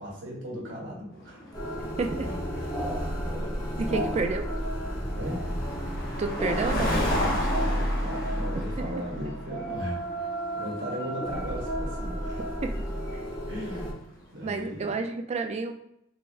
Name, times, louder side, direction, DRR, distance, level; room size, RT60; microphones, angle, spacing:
voice 1, 0.0-1.4 2.2-4.2 5.1-5.5 7.3-12.4 13.5-13.9 14.3-14.9, equal, 75° right, -3 dB, 1.5 m, -38 dB
sound 1, 1.2-14.7, left 1 dB, 50° left, 0.9 m, -35 dB
sound 2, 1.5-13.9, equal, 20° left, 0.9 m, -32 dB
voice 2, 2.0-2.3 3.8-4.4 6.2-6.9 8.8-8.9 12.6-12.8 14.4-15.7, right 4 dB, 35° right, 6 dB, 0.3 m, -30 dB
3.8 x 3.4 x 2.5 m, 0.79 s
head